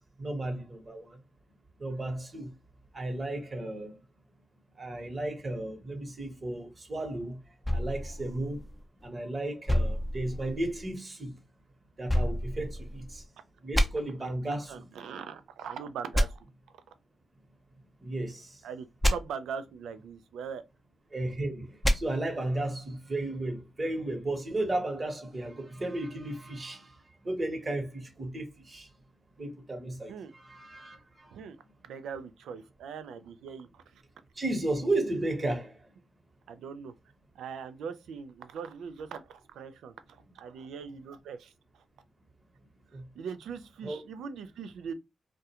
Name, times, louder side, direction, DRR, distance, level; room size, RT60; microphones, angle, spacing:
voice 1, 0.2-1.2 1.8-2.5 2.9-3.9 4.8-7.4 7.7-8.6 9.0-11.3 12.0-13.2 13.6-14.7 18.0-18.5 21.1-26.9 27.2-28.9 29.4-31.3 34.4-35.8 42.9-43.0 43.8-44.0, right 2 dB, 40° right, 1.0 m, -34 dB
sound 1, 7.6-9.1 9.7-10.9 12.1-13.2 13.7-13.8 16.1-16.2 19.0-19.1 21.8-22.0, equal, 5° left, 0.6 m, -28 dB
voice 2, 14.4-16.5 18.6-20.6 30.1-30.3 31.3-31.6 31.8-34.0 36.5-36.9 37.3-41.8 42.9-44.9, right 6 dB, 85° right, 0.3 m, -41 dB
2.3 x 2.1 x 2.8 m
supercardioid pair, 45°, 0 cm